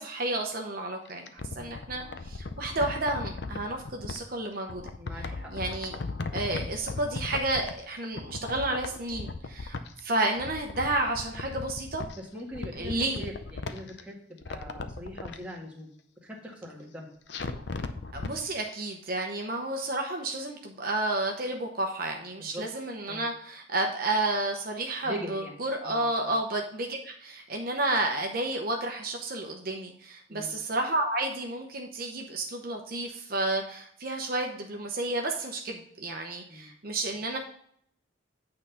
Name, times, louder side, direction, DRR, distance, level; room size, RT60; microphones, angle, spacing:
voice 1, 0.0-4.8 5.1-6.0 6.3-12.0 12.7-13.2 18.1-37.4, right 2 dB, 50° right, 2 dB, 0.8 m, -31 dB
sound 1, 1.0-4.2 4.7-7.9 8.1-10.0 10.3-12.2 12.5-14.0 14.4-15.4 17.3-18.3 18.7-18.8, left 3 dB, 60° left, 0.6 m, -37 dB
voice 2, 5.0-5.5 5.9-6.1 12.2-15.9 16.2-17.1 22.5-22.6 23.1-23.2 25.0-25.5 25.8-26.3 30.3-30.5 36.5-36.7, equal, 5° right, -4 dB, 1.6 m, -41 dB
8.9 x 3.8 x 5.6 m, 0.65 s
head